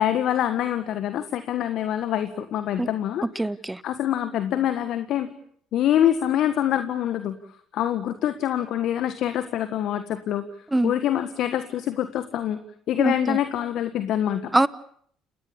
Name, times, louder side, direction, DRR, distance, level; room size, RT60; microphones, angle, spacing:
voice 1, 0.0-3.2 3.8-5.3 5.7-7.4 7.7-10.4 10.8-12.6 12.9-14.5, left 11 dB, 60° left, 10 dB, 1.6 m, -25 dB
voice 2, 3.4-3.8 10.7-10.9 13.0-13.4 14.5-14.7, right 2 dB, 10° right, 18 dB, 1.1 m, -23 dB
30.0 x 17.5 x 8.5 m, 0.64 s
hypercardioid pair, 55°, 0 cm